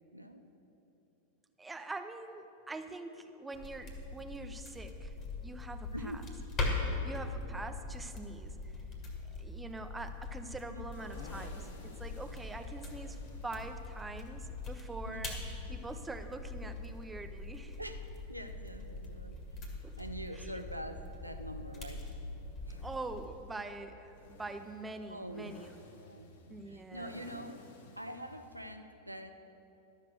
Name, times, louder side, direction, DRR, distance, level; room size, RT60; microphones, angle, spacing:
voice 1, 0.1-0.4 5.9-6.3 10.7-10.9 15.1-15.3 17.8-18.0 18.3-19.4 20.0-22.0 22.7-22.8 25.1-25.5 26.0-27.6 28.0-29.3, equal, 90° right, 7 dB, 0.5 m, -44 dB
voice 2, 1.6-5.1 5.4-6.2 7.0-8.8 9.4-15.4 15.7-17.8 19.8-20.0 20.3-20.5 22.8-25.7 26.5-27.2, right 2 dB, 10° right, 8 dB, 0.6 m, -44 dB
sound 1, 3.5-23.3, left 3 dB, 30° left, 1.8 m, -42 dB
sound 2, 10.9-28.7, left 2 dB, 55° left, 1.1 m, -57 dB
12.0 x 6.5 x 6.6 m, 3.0 s
figure-of-eight pair, 90°, 0 cm